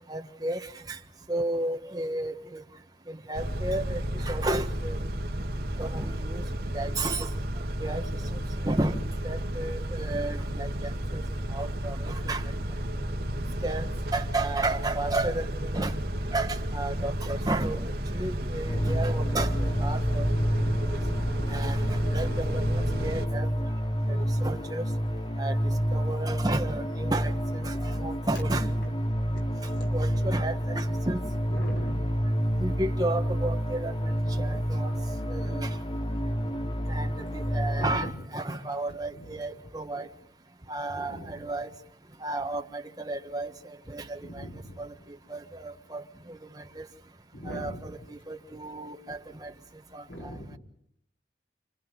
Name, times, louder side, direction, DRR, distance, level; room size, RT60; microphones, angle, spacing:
voice 1, 0.1-1.0 1.3-2.6 3.1-5.0 5.8-6.4 6.7-7.3 7.8-8.0 8.3-9.0 9.2-11.2 11.5-12.4 13.6-15.9 16.3-17.8 18.1-20.3 21.5-23.5 24.1-24.8 25.4-28.7 29.9-31.2 32.6-34.9 35.3-35.8 36.9-40.1 40.7-41.7 42.2-44.4 44.8-44.9 45.3-46.0 46.3-46.8 47.4-49.5 49.9-50.3, right 2 dB, 20° right, 1.5 m, -33 dB
Car / Idling / Accelerating revving vroom, 3.3-23.3, equal, 60° right, 2.2 m, -32 dB
sound 1, 18.7-38.0, equal, 30° left, 0.8 m, -29 dB
voice 2, 31.5-32.1 34.3-34.6 37.8-38.1 39.1-39.3 41.0-41.4 44.2-44.9 47.3-47.8 50.1-50.6, equal, 75° left, 5.1 m, -40 dB
30.0 x 28.5 x 3.9 m
head